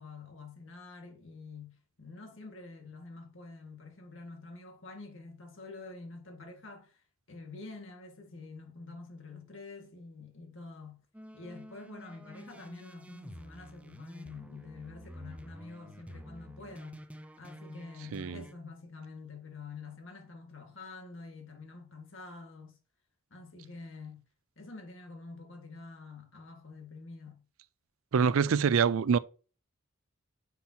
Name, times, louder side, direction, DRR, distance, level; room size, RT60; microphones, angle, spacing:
voice 1, 0.0-7.0 7.3-11.0 11.3-17.0 17.4-22.8 23.3-24.2 24.6-27.4, left 3 dB, 65° left, 1.9 m, -47 dB
sound 1, 11.1-18.5, equal, 5° right, 0.4 m, -49 dB
voice 2, 18.1-18.4 28.1-29.2, right 6 dB, 80° right, 0.4 m, -25 dB
9.4 x 5.9 x 2.9 m
head